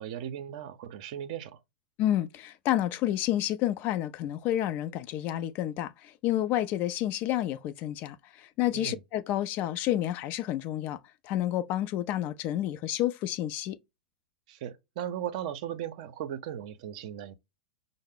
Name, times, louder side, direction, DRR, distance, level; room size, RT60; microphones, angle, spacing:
voice 1, 0.0-1.6 8.7-9.0 14.5-17.3, right 10 dB, 50° right, 0.6 m, -37 dB
voice 2, 2.0-8.2 8.6-11.0 11.2-13.8, left 13 dB, 40° left, 0.4 m, -29 dB
5.5 x 2.0 x 3.5 m
figure-of-eight pair, 95°, 5 cm